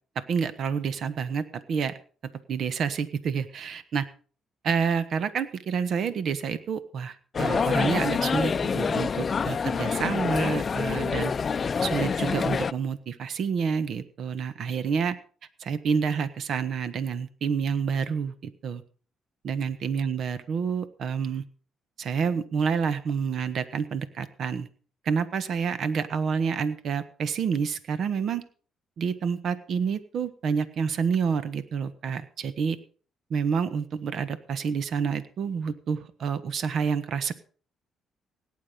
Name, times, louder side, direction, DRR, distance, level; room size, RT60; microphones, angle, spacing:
voice 1, 0.1-1.9 2.5-4.0 4.6-11.3 11.8-15.2 15.6-18.8 19.4-21.4 22.0-24.7 25.0-28.4 29.0-32.8 33.3-37.3, right 6 dB, 65° right, 13 dB, 1.3 m, -28 dB
sound 1, 7.3-12.7, left 5 dB, 40° left, 0.6 m, -26 dB
17.5 x 9.7 x 5.2 m, 0.42 s
cardioid pair, 90°, 0 cm